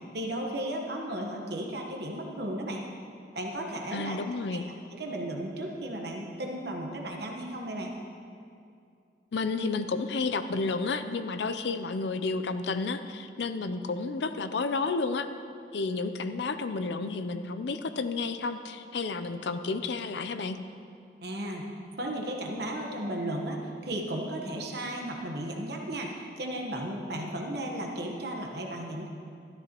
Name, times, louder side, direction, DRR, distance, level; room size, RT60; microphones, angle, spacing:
voice 1, 0.1-2.8 3.3-4.2 4.5-4.6 4.9-8.0 21.2-21.7 22.0-29.1, right 1 dB, 60° right, 1 dB, 1.2 m, -34 dB
voice 2, 3.9-4.7 9.3-15.3 15.7-20.6, left 4 dB, 65° left, 10 dB, 0.5 m, -31 dB
13.0 x 13.0 x 3.0 m, 2.4 s
head